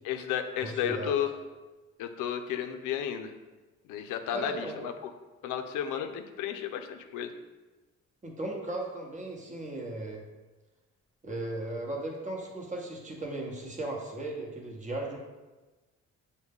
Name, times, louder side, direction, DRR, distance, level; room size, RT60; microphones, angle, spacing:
voice 1, 0.0-1.3 2.0-3.3 3.9-5.1 5.4-7.3, left 9 dB, 90° left, 7 dB, 0.5 m, -33 dB
voice 2, 0.6-1.1 4.3-4.8 8.2-10.2 11.2-15.2, right 1 dB, 25° right, 0 dB, 0.9 m, -36 dB
6.1 x 2.2 x 3.5 m, 1.2 s
cardioid pair, 90°, 30 cm